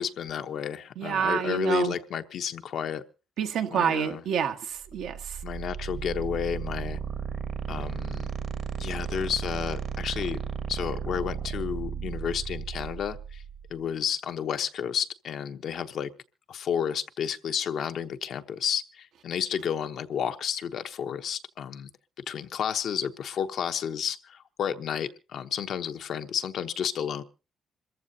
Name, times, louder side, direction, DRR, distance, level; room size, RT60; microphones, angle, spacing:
voice 1, 0.0-3.0 3.7-4.2 5.4-7.0 7.7-8.3 8.8-10.4 10.7-13.4 13.7-16.1 16.5-21.9 22.3-27.2, left 8 dB, 70° left, 1.0 m, -31 dB
voice 2, 1.0-1.9 3.4-5.2, right 8 dB, 80° right, 1.6 m, -27 dB
sound 1, 4.9-13.7, right 6 dB, 55° right, 1.6 m, -34 dB
27.0 x 14.5 x 2.8 m
cardioid pair, 90°, 0 cm